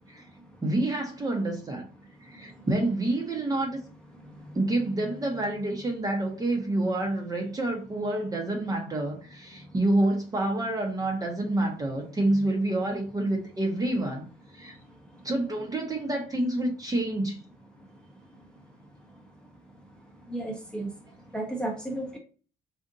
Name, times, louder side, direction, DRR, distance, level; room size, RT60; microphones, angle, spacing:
voice 1, 0.6-1.9 2.2-3.8 4.5-14.3 14.5-14.7 15.2-17.4, right 1 dB, 20° right, 0.9 m, -28 dB
voice 2, 20.3-20.9 21.3-22.2, right 1 dB, 5° left, 0.9 m, -32 dB
3.8 x 2.5 x 2.5 m
cardioid pair, 110°, 17 cm